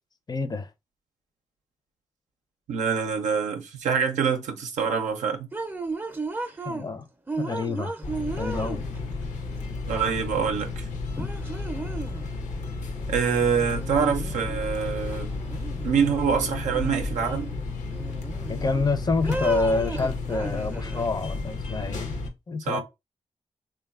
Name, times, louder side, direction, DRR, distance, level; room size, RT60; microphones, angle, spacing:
voice 1, 0.3-0.7 6.7-7.1 7.4-7.9 8.4-8.9 11.2-11.3 18.5-22.1 22.5-22.8, left 3 dB, 35° left, 0.5 m, -27 dB
voice 2, 2.7-5.5 9.9-10.9 13.1-15.3 15.8-17.5 22.7-22.8, right 6 dB, 90° right, 0.5 m, -25 dB
sound 1, 5.5-6.9 7.3-9.2 10.6-10.7 11.2-12.3 13.6-14.6 14.9-16.2 16.7-17.5 17.9-18.8 19.2-21.0, right 3 dB, 15° right, 0.5 m, -35 dB
sound 2, 8.0-22.3, left 3 dB, 75° left, 0.6 m, -33 dB
3.0 x 2.2 x 2.3 m
supercardioid pair, 40°, 12 cm